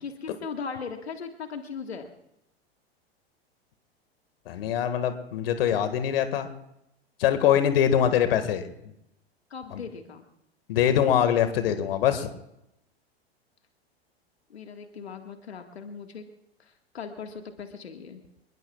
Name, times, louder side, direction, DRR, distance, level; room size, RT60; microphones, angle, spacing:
voice 1, 0.0-2.1 9.5-10.2 14.5-16.2 16.6-18.2, left 5 dB, 80° left, 5 dB, 1.8 m, -38 dB
voice 2, 4.5-6.5 7.2-8.7 9.7-9.8 10.7-12.3, left 9 dB, 65° left, 9 dB, 1.9 m, -23 dB
28.0 x 21.0 x 2.4 m, 0.85 s
figure-of-eight pair, 90°, 31 cm